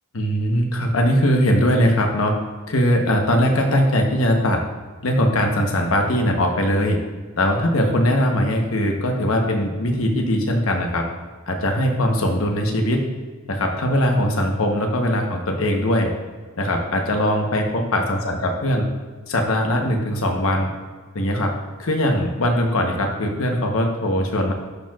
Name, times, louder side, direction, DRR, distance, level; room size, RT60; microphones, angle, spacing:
voice 1, 0.1-2.3 2.7-4.6 5.0-7.0 7.4-11.1 11.5-13.0 13.5-16.1 16.6-18.9 19.3-20.7 21.1-21.5 21.8-24.5, equal, 75° left, 2 dB, 1.0 m, -20 dB
12.0 x 4.6 x 2.4 m, 1.4 s
head